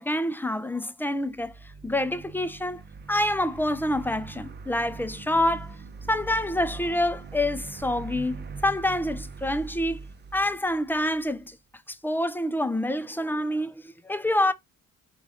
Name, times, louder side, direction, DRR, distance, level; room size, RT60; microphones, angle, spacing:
voice 1, 0.0-1.5 1.8-2.8 3.1-5.8 6.1-10.0 10.3-11.6 11.9-14.5, left 1 dB, 5° left, 0.5 m, -27 dB
sound 1, 1.2-11.4, right 4 dB, 35° right, 0.7 m, -42 dB
4.6 x 2.4 x 4.0 m
cardioid pair, 90°, 30 cm